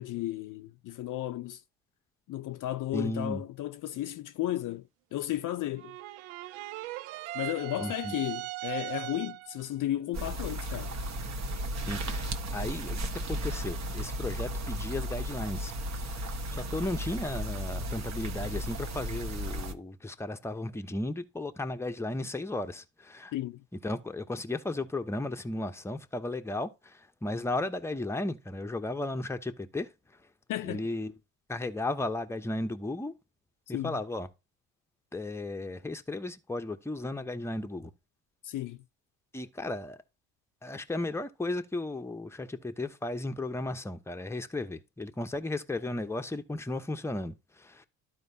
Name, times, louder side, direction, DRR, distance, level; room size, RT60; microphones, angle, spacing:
voice 1, 0.0-1.6 2.3-6.0 7.3-11.0 23.3-23.6 30.5-30.8 33.7-34.0 38.4-38.8, left 14 dB, 50° left, 0.6 m, -34 dB
voice 2, 2.9-3.4 7.8-8.1 11.9-15.7 16.0-23.3 23.8-29.9 30.6-31.1 31.5-33.1 33.7-34.3 35.1-37.9 39.3-40.0 40.6-47.9, left 2 dB, 5° left, 0.8 m, -35 dB
sound 1, 5.8-9.6, right 18 dB, 80° right, 0.5 m, -39 dB
sound 2, 10.1-19.7, equal, 40° right, 1.3 m, -35 dB
12.0 x 4.5 x 2.7 m
supercardioid pair, 70°, 40 cm